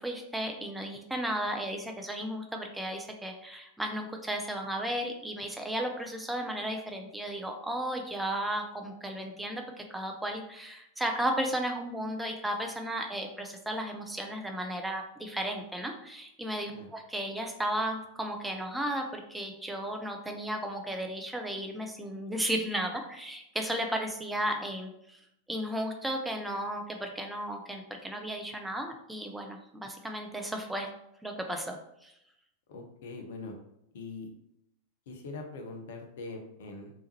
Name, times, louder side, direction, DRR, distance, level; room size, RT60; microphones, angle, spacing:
voice 1, 0.0-25.2 25.5-30.9 31.2-32.1, right 1 dB, 5° right, 3 dB, 0.4 m, -34 dB
voice 2, 32.7-33.5 33.9-34.3 35.1-36.9, left 3 dB, 55° left, 4 dB, 0.6 m, -42 dB
3.4 x 3.0 x 2.8 m, 0.79 s
figure-of-eight pair, 90°, 0 cm